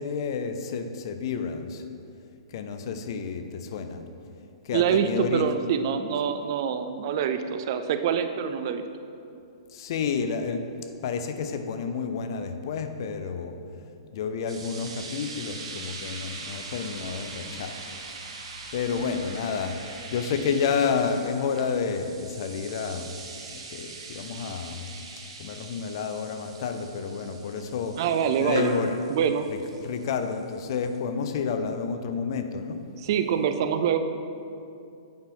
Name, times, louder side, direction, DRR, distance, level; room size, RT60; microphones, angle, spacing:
voice 1, 0.0-1.8 2.5-4.0 4.6-5.5 9.7-10.7 11.0-13.6 14.1-17.8 18.7-19.7 20.1-23.1 23.5-24.9 25.4-28.0 28.4-29.0 29.5-32.8, left 6 dB, 50° left, 8 dB, 0.6 m, -30 dB
voice 2, 4.7-8.8 19.0-19.2 28.0-28.7 29.1-29.5 32.9-34.0, right 8 dB, 45° right, 9 dB, 0.5 m, -25 dB
sound 1, 14.5-31.0, right 4 dB, 75° right, 1.2 m, -42 dB
8.6 x 5.9 x 3.9 m, 2.6 s
hypercardioid pair, 150°, 3 cm